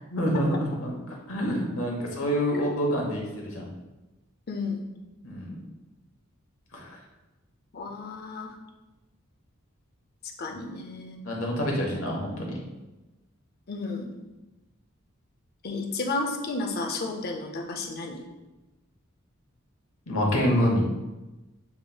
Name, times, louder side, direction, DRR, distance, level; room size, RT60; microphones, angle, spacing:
voice 1, 0.1-3.7 5.2-5.6 6.7-6.9 11.2-12.5 20.1-20.8, equal, 65° left, -1 dB, 1.1 m, -27 dB
voice 2, 4.5-4.8 7.7-8.5 10.4-11.2 13.7-14.1 15.6-18.2, left 3 dB, 45° left, 3 dB, 0.6 m, -32 dB
7.0 x 3.0 x 2.3 m, 1.1 s
head